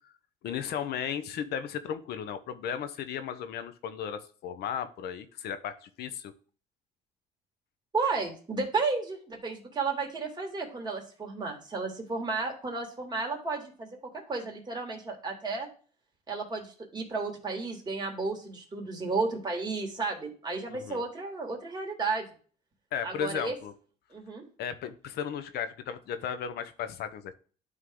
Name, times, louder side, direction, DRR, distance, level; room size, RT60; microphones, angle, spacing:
voice 1, 0.4-6.3 20.7-21.0 22.9-23.7 24.6-27.4, left 8 dB, 75° left, 10 dB, 0.9 m, -35 dB
voice 2, 7.9-14.0 14.3-15.7 16.3-22.3 23.0-23.6 24.1-24.4, right 4 dB, 25° right, 0 dB, 2.6 m, -33 dB
11.5 x 3.8 x 3.8 m, 0.41 s
cardioid pair, 110°, 17 cm